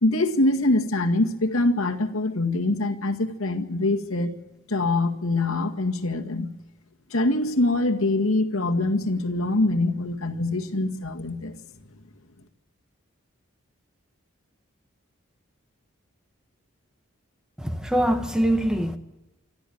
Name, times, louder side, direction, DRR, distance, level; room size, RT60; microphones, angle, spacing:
voice 1, 0.0-4.3 4.7-6.5 7.1-11.6, left 2 dB, 85° left, 1.9 m, -24 dB
voice 2, 17.6-19.0, right 1 dB, 5° right, 1.2 m, -23 dB
26.0 x 13.5 x 8.6 m
head